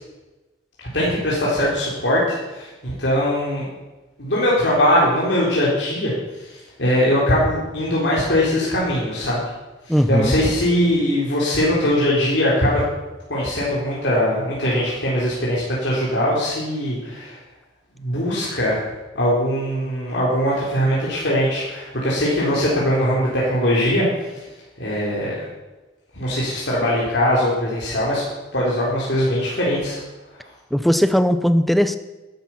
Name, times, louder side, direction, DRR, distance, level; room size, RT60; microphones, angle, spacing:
voice 1, 0.8-3.7 4.2-9.4 9.9-12.8 13.3-17.4 18.0-18.8 19.1-24.0 24.8-25.4 26.1-28.2 28.5-30.0, equal, 65° left, -6 dB, 3.7 m, -21 dB
voice 2, 9.9-10.3 30.7-32.0, equal, ahead, 11 dB, 0.6 m, -18 dB
13.0 x 12.5 x 5.7 m, 1.1 s
head